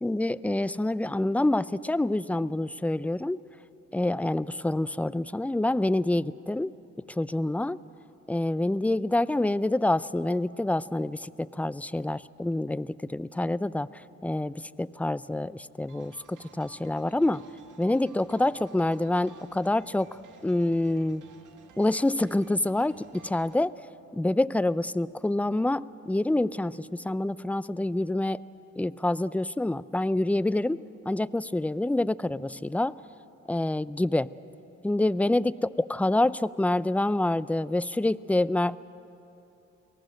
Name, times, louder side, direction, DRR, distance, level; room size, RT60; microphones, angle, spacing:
voice 1, 0.0-3.4 3.9-6.7 7.1-7.8 8.3-17.4 17.8-20.1 20.4-21.2 21.8-23.7 24.1-28.4 28.8-30.8 31.1-32.9 33.5-34.3 34.8-38.8, left 1 dB, 5° left, 18 dB, 0.4 m, -27 dB
sound 1, 15.9-23.6, right 5 dB, 75° right, 2.1 m, -54 dB
29.0 x 19.0 x 6.5 m, 2.9 s
cardioid pair, 65°, 31 cm